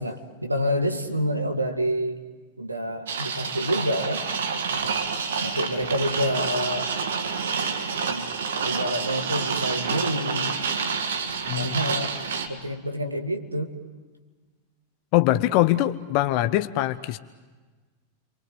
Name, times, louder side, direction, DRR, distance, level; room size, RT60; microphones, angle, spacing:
voice 1, 0.0-2.2 2.6-4.3 5.4-6.9 8.1-8.3 8.6-10.6 11.6-12.2 12.5-13.8, equal, 85° right, 5 dB, 2.0 m, -28 dB
sound 1, 3.1-12.5, right 5 dB, 65° right, 2.1 m, -28 dB
voice 2, 15.1-17.2, left 15 dB, 45° left, 12 dB, 0.8 m, -22 dB
29.5 x 24.0 x 7.8 m, 1.3 s
figure-of-eight pair, 90°, 0 cm